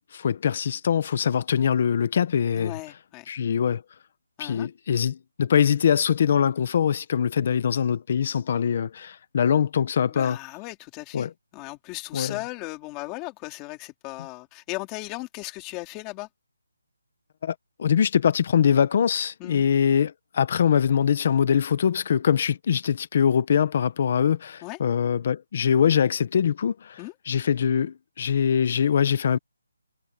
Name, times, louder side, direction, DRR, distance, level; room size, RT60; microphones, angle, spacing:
voice 1, 0.1-2.7 3.3-3.8 4.4-10.4 11.1-11.3 12.1-12.3 17.4-27.0 27.3-29.4, left 8 dB, 30° left, 0.9 m, -23 dB
voice 2, 2.5-3.3 4.4-4.7 10.0-16.3 19.4-19.6 24.6-24.8 27.0-27.1, left 22 dB, 10° left, 3.3 m, -37 dB
hypercardioid pair, 180°, 0 cm